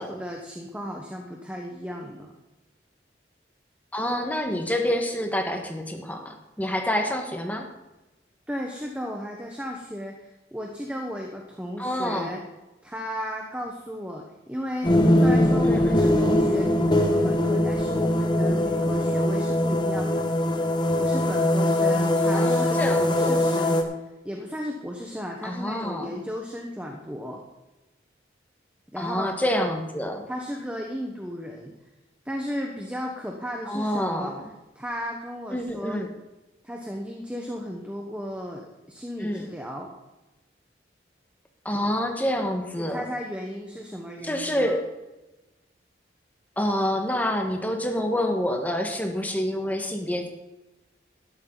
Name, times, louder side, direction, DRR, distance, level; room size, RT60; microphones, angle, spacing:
voice 1, 0.0-2.3 8.5-12.4 12.8-14.9 15.2-20.3 21.0-23.9 24.2-27.4 28.9-29.3 30.3-31.7 32.2-34.3 34.7-36.0 36.6-39.9 42.8-44.8, equal, 5° right, 1 dB, 1.1 m, -35 dB
voice 2, 3.9-7.7 11.8-12.3 15.7-16.1 22.2-23.4 25.4-26.1 29.0-30.3 33.7-34.5 35.5-36.1 39.2-39.4 41.6-43.0 44.2-44.8 46.6-50.3, left 1 dB, 10° left, 3 dB, 1.5 m, -27 dB
sound 1, 14.8-23.8, left 1 dB, 25° left, 1.2 m, -21 dB
12.5 x 12.0 x 4.0 m, 1.1 s
head